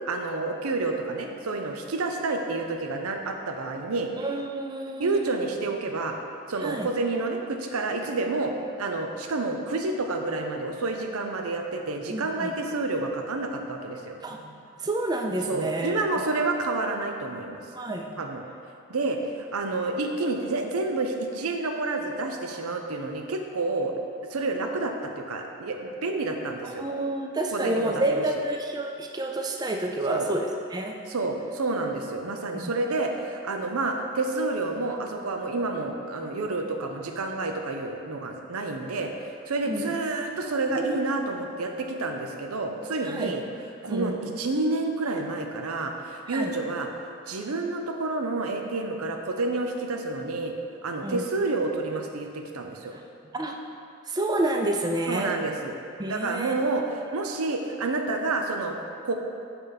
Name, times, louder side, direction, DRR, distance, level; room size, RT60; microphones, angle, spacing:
voice 1, 0.1-4.1 5.0-6.2 6.5-14.2 15.5-17.6 18.2-18.4 18.9-23.9 24.3-26.8 27.5-28.2 30.1-30.3 31.1-43.4 43.8-46.9 47.3-50.5 50.8-52.9 55.1-55.8 56.1-58.8 59.0-59.1, right 3 dB, 90° right, 4 dB, 0.6 m, -29 dB
voice 2, 4.2-5.4 6.6-6.9 12.1-12.5 14.2-16.0 17.8-18.2 26.6-31.0 32.5-32.7 39.7-39.9 40.7-40.8 43.0-43.4 43.9-44.2 46.3-46.5 51.0-51.2 52.9-53.0 53.3-53.6 54.1-55.3 56.0-56.6, right 1 dB, 20° right, 3 dB, 0.3 m, -29 dB
8.0 x 4.0 x 4.0 m, 2.5 s
head